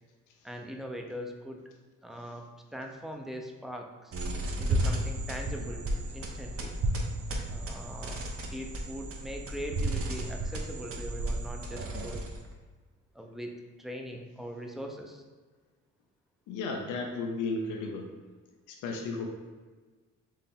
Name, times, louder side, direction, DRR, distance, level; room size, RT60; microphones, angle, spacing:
voice 1, 0.4-1.6 2.0-4.1 4.6-6.8 7.4-8.2 8.5-12.3 13.1-15.2, equal, ahead, 2 dB, 0.6 m, -41 dB
sound 1, 4.1-12.5, right 1 dB, 50° right, 0.8 m, -33 dB
voice 2, 16.5-18.1 18.7-19.3, left 3 dB, 85° left, 2 dB, 0.7 m, -34 dB
4.4 x 3.2 x 3.6 m, 1.4 s
cardioid pair, 90°, 30 cm